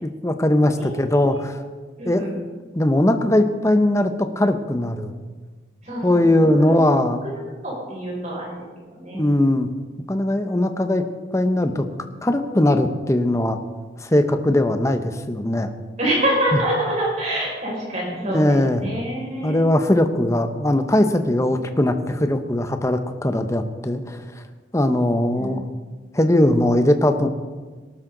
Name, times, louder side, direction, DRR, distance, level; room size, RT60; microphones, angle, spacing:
voice 1, 0.0-1.6 2.0-2.2 2.7-5.2 6.0-7.3 9.1-9.7 10.1-11.0 11.3-11.9 12.2-13.6 14.0-15.7 16.5-16.6 18.2-18.9 19.4-24.4 24.7-25.6 26.1-27.3, left 1 dB, 15° left, 7 dB, 0.8 m, -20 dB
voice 2, 2.0-2.4 5.8-6.3 6.6-6.8 7.6-8.6 8.9-9.2 16.0-19.6 25.3-25.5, right 1 dB, 40° right, -4 dB, 5.6 m, -26 dB
18.5 x 12.0 x 3.9 m, 1.4 s
head